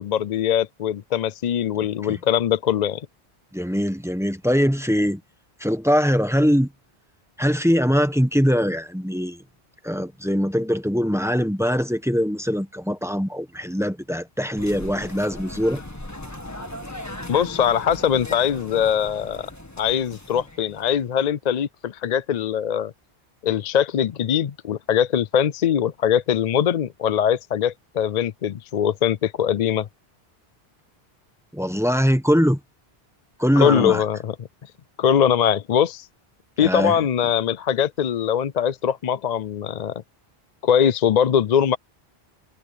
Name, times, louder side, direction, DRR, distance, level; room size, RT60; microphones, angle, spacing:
voice 1, 0.0-3.1 17.3-19.5 19.8-22.9 23.4-29.9 33.6-34.4 34.6-34.7 35.0-36.1 36.6-40.0 40.6-41.8, left 9 dB, 55° left, 0.5 m, -22 dB
voice 2, 3.5-5.2 5.6-6.7 7.4-9.4 9.8-15.8 31.5-32.6 33.4-34.0 36.6-37.0, equal, 5° right, 1.1 m, -22 dB
sound 1, 14.6-21.2, left 1 dB, 15° left, 1.9 m, -38 dB
omnidirectional pair, 1.1 m